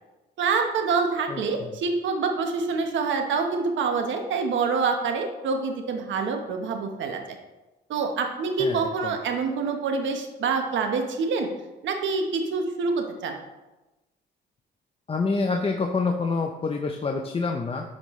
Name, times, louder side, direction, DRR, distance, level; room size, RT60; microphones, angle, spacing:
voice 1, 0.4-7.4 7.9-11.5 11.8-13.4, right 4 dB, 70° right, 4 dB, 1.1 m, -26 dB
voice 2, 1.3-1.7 8.6-9.1 15.1-17.8, left 4 dB, 30° left, 3 dB, 0.7 m, -27 dB
10.5 x 5.2 x 3.2 m, 1.1 s
cardioid pair, 90°, 20 cm